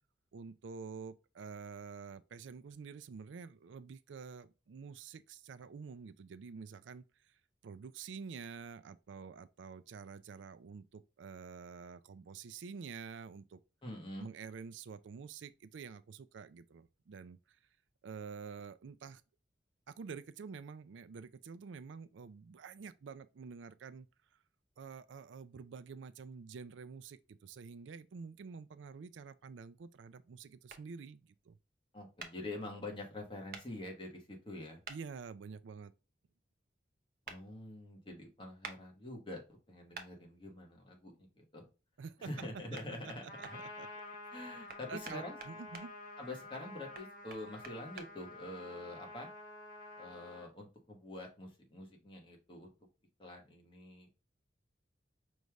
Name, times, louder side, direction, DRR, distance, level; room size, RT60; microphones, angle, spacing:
voice 1, 0.3-7.4 7.6-13.6 14.2-17.6 18.0-19.2 19.9-24.1 24.8-31.6 34.9-35.9 42.0-42.3 43.2-43.9 44.9-45.9, right 5 dB, 90° right, 0.4 m, -48 dB
voice 2, 13.8-14.3 31.9-34.8 37.3-41.6 42.2-43.6 44.3-45.4 46.2-49.3 50.0-52.7 53.2-54.1, left 1 dB, 25° left, 1.3 m, -46 dB
sound 1, 30.7-30.8 32.2-32.3 33.5-33.7 34.8-35.0 37.3-37.4 38.6-38.8 39.9-40.1 42.4-42.5 42.8-43.5 44.7-45.9 46.9-48.1, right 5 dB, 50° right, 0.8 m, -47 dB
Trumpet, 43.3-50.5, left 2 dB, 45° left, 1.8 m, -50 dB
5.3 x 3.2 x 2.3 m
head